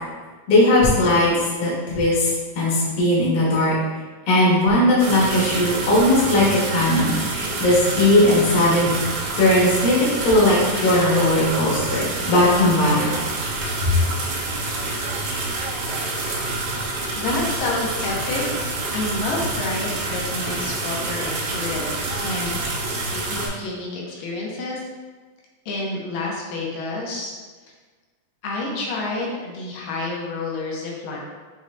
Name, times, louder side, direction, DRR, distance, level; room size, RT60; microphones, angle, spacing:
voice 1, 0.5-2.3 2.5-3.7 4.3-8.9 9.4-13.1 13.8-14.0, left 1 dB, 50° left, -8 dB, 1.1 m, -18 dB
sound 1, 5.0-23.5, right 2 dB, 75° right, 2.3 m, -27 dB
voice 2, 16.5-24.8 25.7-27.3 28.4-31.2, left 2 dB, 80° left, -3 dB, 2.4 m, -29 dB
6.5 x 3.1 x 2.6 m, 1.4 s
omnidirectional pair, 4.0 m